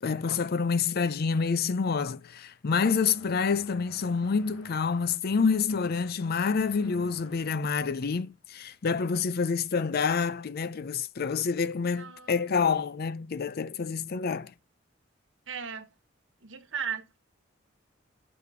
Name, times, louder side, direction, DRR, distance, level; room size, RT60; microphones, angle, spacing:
voice 1, 0.0-14.5, left 5 dB, 55° left, 0.5 m, -28 dB
sound 1, 2.8-8.3, left 2 dB, 85° left, 2.2 m, -53 dB
voice 2, 11.9-12.5 15.5-15.9 16.4-17.2, right 7 dB, 70° right, 1.4 m, -37 dB
6.7 x 5.0 x 4.9 m
head